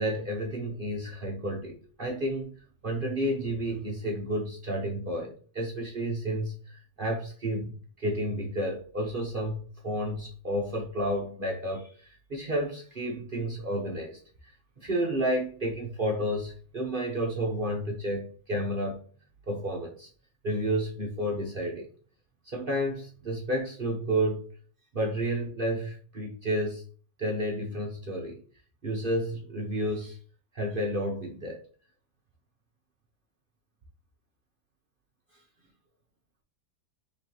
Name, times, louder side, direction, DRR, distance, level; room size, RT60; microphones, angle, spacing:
voice 1, 0.0-2.5 2.8-19.1 19.5-20.1 20.4-21.9 22.4-24.5 24.9-26.8 27.2-28.4 28.8-30.2 30.5-31.6, right 1 dB, 45° right, 0.7 m, -31 dB
5.8 x 3.1 x 2.9 m
omnidirectional pair, 2.0 m